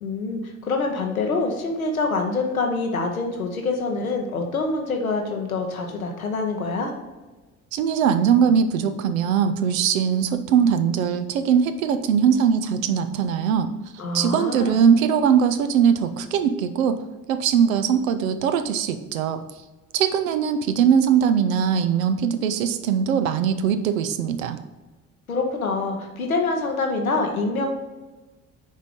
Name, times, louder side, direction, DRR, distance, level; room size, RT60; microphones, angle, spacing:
voice 1, 0.0-6.9 14.0-14.8 25.3-27.7, left 3 dB, 90° left, 2 dB, 0.8 m, -25 dB
voice 2, 7.7-13.7 14.1-17.0 17.3-19.4 19.9-24.6, right 7 dB, 80° right, 10 dB, 0.6 m, -21 dB
6.6 x 4.6 x 5.1 m, 1.2 s
figure-of-eight pair, 40°, 41 cm